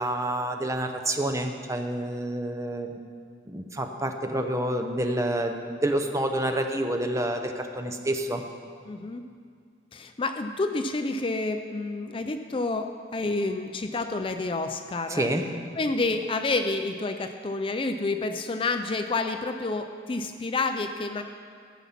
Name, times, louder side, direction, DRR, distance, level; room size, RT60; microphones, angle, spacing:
voice 1, 0.0-3.0 3.5-8.4 15.1-15.4, right 1 dB, 15° right, 5 dB, 0.7 m, -28 dB
voice 2, 8.9-9.3 9.9-15.3 15.8-21.2, left 3 dB, 30° left, 7 dB, 0.4 m, -29 dB
15.5 x 7.1 x 5.8 m, 2.1 s
head